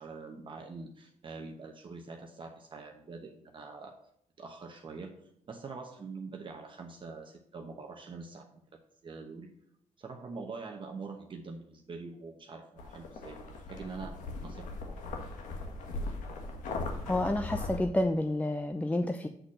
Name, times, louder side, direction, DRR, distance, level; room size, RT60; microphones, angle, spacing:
voice 1, 0.0-4.0 4.4-5.1 5.5-8.5 9.0-9.5 10.0-15.1, right 4 dB, 40° right, 2 dB, 1.0 m, -44 dB
sound 1, 12.8-17.8, left 2 dB, 80° left, 1.5 m, -39 dB
voice 2, 17.1-19.3, left 1 dB, 10° left, 6 dB, 0.6 m, -29 dB
7.9 x 4.3 x 6.3 m, 0.73 s
cardioid pair, 90°, 13 cm